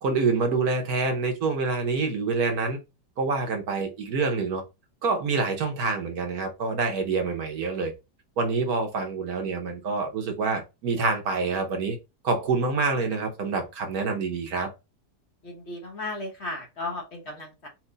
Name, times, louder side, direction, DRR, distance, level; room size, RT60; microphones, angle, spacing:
voice 1, 0.0-2.8 3.2-4.6 5.0-7.9 8.4-12.0 12.2-14.7, right 4 dB, 65° right, 3 dB, 1.3 m, -26 dB
voice 2, 15.4-17.7, left 2 dB, 45° left, 1 dB, 1.2 m, -35 dB
4.5 x 2.6 x 3.8 m, 0.26 s
omnidirectional pair, 1.8 m